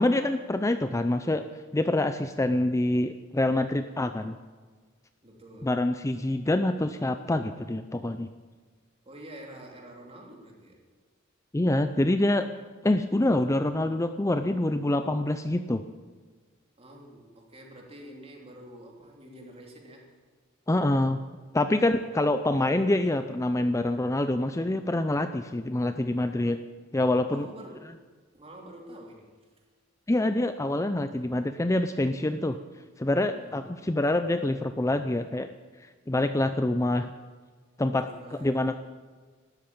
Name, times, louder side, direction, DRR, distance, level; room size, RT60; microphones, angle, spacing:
voice 1, 0.0-1.5 1.7-4.4 5.6-8.3 11.5-12.5 12.8-15.8 20.7-21.2 21.5-26.6 26.9-27.5 30.1-32.6 33.0-35.5 36.1-37.1 37.8-38.8, left 1 dB, 15° left, 9 dB, 0.5 m, -26 dB
voice 2, 5.2-5.7 9.0-10.8 16.8-20.1 21.8-22.2 27.3-27.9 28.3-29.3 33.3-33.7 37.9-38.8, right 1 dB, 30° right, 0 dB, 3.1 m, -47 dB
13.0 x 12.5 x 8.8 m, 1.5 s
head